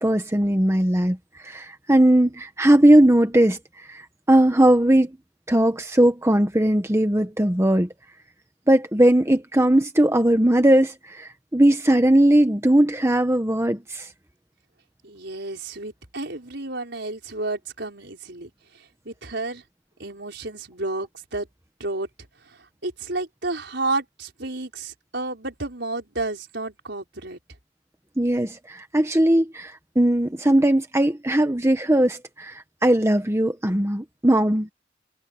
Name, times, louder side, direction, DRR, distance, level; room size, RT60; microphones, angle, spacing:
voice 1, 0.0-5.2 5.5-7.9 8.7-14.1 28.2-34.7, right 1 dB, 15° right, 1.2 m, -19 dB
voice 2, 15.0-18.5 19.0-19.6 20.0-21.5 21.8-22.1 22.4-27.4, right 2 dB, 60° right, 6.0 m, -31 dB
head